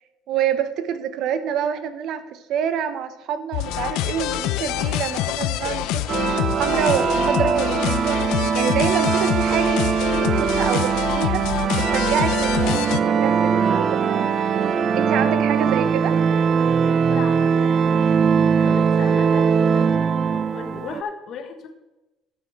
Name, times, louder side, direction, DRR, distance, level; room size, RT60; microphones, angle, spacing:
voice 1, 0.3-6.0 6.6-8.2 8.5-11.4 11.8-14.4 15.0-16.1, right 8 dB, 60° right, 11 dB, 0.9 m, -26 dB
sound 1, 3.5-13.0, left 13 dB, 80° left, 0.5 m, -26 dB
sound 2, 6.1-21.0, right 6 dB, 35° right, 0.4 m, -21 dB
voice 2, 15.1-16.0 16.3-20.1 20.3-21.7, left 6 dB, 50° left, 6 dB, 1.3 m, -37 dB
11.5 x 6.6 x 4.6 m, 1.0 s
cardioid pair, 135°, 0 cm